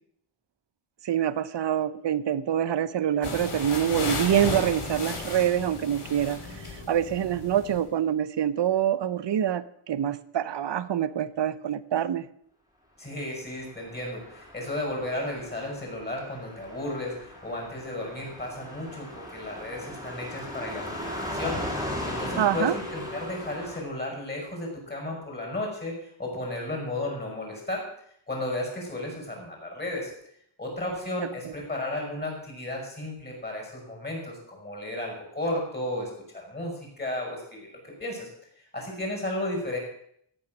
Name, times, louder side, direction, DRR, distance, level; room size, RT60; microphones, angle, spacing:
voice 1, 1.0-12.3 22.4-22.8 31.2-31.5, right 10 dB, 60° right, 16 dB, 0.7 m, -26 dB
sound 1, 3.2-7.9, left 3 dB, 90° left, 3.2 m, -34 dB
voice 2, 13.0-27.9 28.3-30.1 30.6-38.3 38.7-39.8, left 1 dB, 20° left, 0 dB, 5.6 m, -34 dB
Car passing by, 13.9-23.8, left 1 dB, 10° right, 3.2 m, -37 dB
14.5 x 9.0 x 6.3 m, 0.69 s
wide cardioid pair, 160°, 49 cm